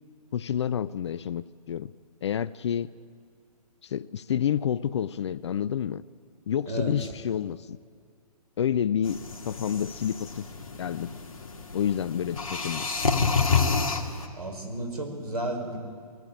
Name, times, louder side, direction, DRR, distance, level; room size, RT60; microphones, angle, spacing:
voice 1, 0.3-1.9 2.2-2.9 3.8-6.0 6.5-7.8 8.6-10.5 10.8-11.1 11.7-12.9, left 9 dB, 45° left, 19 dB, 0.5 m, -29 dB
sound 1, 9.0-14.3, left 5 dB, 65° left, 2.2 m, -29 dB
voice 2, 14.3-15.8, right 1 dB, 75° right, 5 dB, 4.4 m, -32 dB
21.0 x 15.0 x 9.1 m, 2.1 s
figure-of-eight pair, 130°, 20 cm